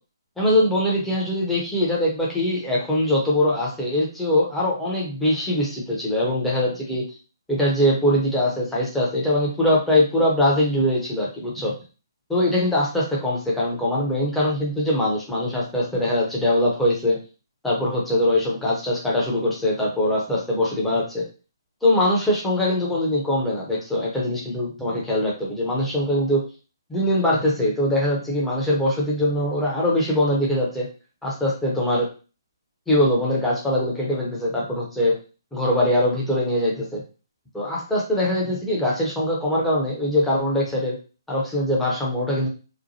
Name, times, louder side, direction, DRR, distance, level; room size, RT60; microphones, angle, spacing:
voice 1, 0.4-7.0 7.5-11.7 12.3-17.2 17.6-21.2 21.8-26.4 26.9-30.9 31.2-32.1 32.9-35.2 35.5-37.0 37.5-41.0 41.3-42.5, left 1 dB, 5° left, -5 dB, 0.8 m, -22 dB
3.0 x 2.1 x 2.7 m, 0.34 s
figure-of-eight pair, 135°, 2 cm